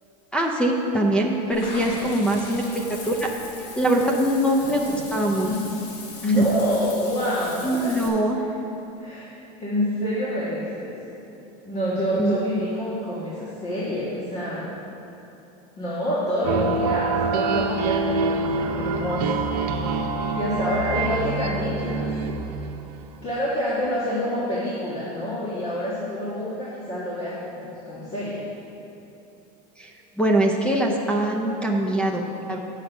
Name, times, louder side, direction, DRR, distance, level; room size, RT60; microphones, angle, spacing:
voice 1, 0.3-3.3 3.8-5.5 6.4-6.5 7.6-8.4 12.2-12.3 29.8-29.9 30.2-32.6, right 1 dB, 5° left, 0 dB, 0.5 m, -23 dB
Water / Bathtub (filling or washing), 1.5-8.1, left 3 dB, 80° left, 1.5 m, -40 dB
voice 2, 4.6-5.0 5.4-5.6 6.2-8.0 8.4-8.5 9.0-9.3 9.6-10.9 11.6-14.7 15.8-19.4 20.3-22.1 23.2-28.4, left 1 dB, 30° left, -8 dB, 1.6 m, -27 dB
sound 1, 16.4-23.0, right 4 dB, 80° right, 0.7 m, -26 dB
7.8 x 6.4 x 5.1 m, 3.0 s
supercardioid pair, 135°, 21 cm